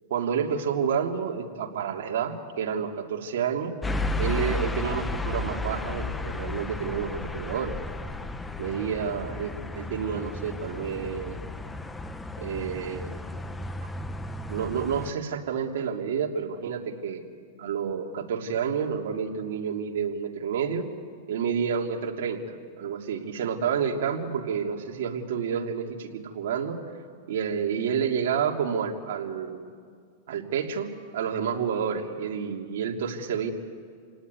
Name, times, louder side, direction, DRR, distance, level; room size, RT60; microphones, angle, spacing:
voice 1, 0.1-3.8 4.2-7.7 8.6-11.4 12.4-13.2 14.5-17.2 17.6-20.9 21.3-26.8 27.3-29.7 30.3-30.9 31.1-33.5, right 7 dB, 70° right, 2 dB, 2.9 m, -29 dB
sound 1, 3.8-15.1, left 2 dB, 10° left, 1.1 m, -33 dB
28.5 x 18.0 x 9.6 m, 2.1 s
hypercardioid pair, 135°, 0 cm